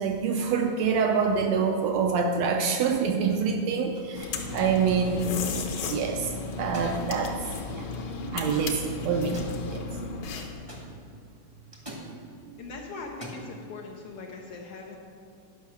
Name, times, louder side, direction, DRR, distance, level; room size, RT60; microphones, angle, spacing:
voice 1, 0.0-5.3 5.9-7.4 7.7-7.9 8.3-9.4 9.7-9.9 12.4-12.6, right 6 dB, 80° right, 4 dB, 1.5 m, -26 dB
sound 1, 3.9-4.3 5.1-5.8 6.5-7.0 8.3-8.8 9.1-9.7 10.7-10.8 11.7-12.1 13.0-13.4, right 1 dB, 25° right, 0.7 m, -43 dB
sound 2, 4.1-10.7, left 4 dB, 65° left, 1.8 m, -34 dB
voice 2, 12.6-15.0, left 3 dB, 85° left, -1 dB, 1.3 m, -40 dB
11.0 x 5.6 x 6.7 m, 2.4 s
omnidirectional pair, 3.8 m